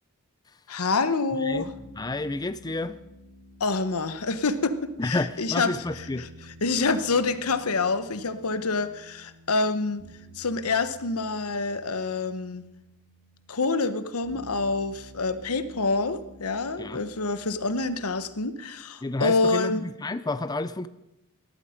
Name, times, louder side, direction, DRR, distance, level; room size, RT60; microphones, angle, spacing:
voice 1, 0.7-1.7 3.6-5.7 6.2-6.3 6.6-10.0 10.4-12.6 13.5-19.8, left 3 dB, 90° left, 12 dB, 1.1 m, -27 dB
voice 2, 1.4-3.0 5.0-6.3 16.8-17.0 19.0-20.9, left 2 dB, 20° left, 13 dB, 0.5 m, -30 dB
sound 1, 1.5-18.5, left 1 dB, 80° right, 7.1 m, -51 dB
18.5 x 13.0 x 5.1 m, 0.90 s
head